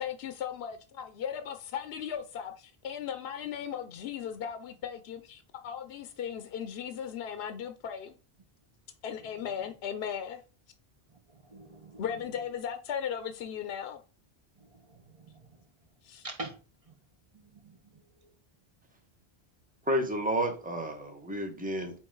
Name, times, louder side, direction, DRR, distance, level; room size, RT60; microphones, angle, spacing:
voice 1, 0.0-8.1 9.0-10.4 12.0-14.0 16.0-16.3, left 8 dB, 75° left, 0.8 m, -37 dB
voice 2, 11.3-12.0 14.6-15.5 16.2-16.6 17.3-18.0, right 2 dB, 35° right, 1.1 m, -45 dB
voice 3, 19.9-21.9, equal, 10° right, 1.1 m, -31 dB
9.1 x 3.0 x 3.8 m
omnidirectional pair, 1.1 m